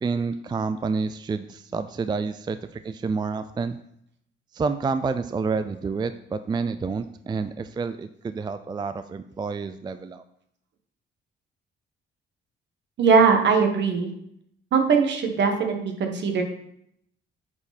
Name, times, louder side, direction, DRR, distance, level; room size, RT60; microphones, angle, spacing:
voice 1, 0.0-3.8 4.5-10.2, right 4 dB, 20° right, 11 dB, 0.4 m, -29 dB
voice 2, 13.0-14.1 14.7-16.4, right 5 dB, 65° right, 5 dB, 1.4 m, -20 dB
8.5 x 5.0 x 4.2 m, 0.73 s
cardioid pair, 90°, 20 cm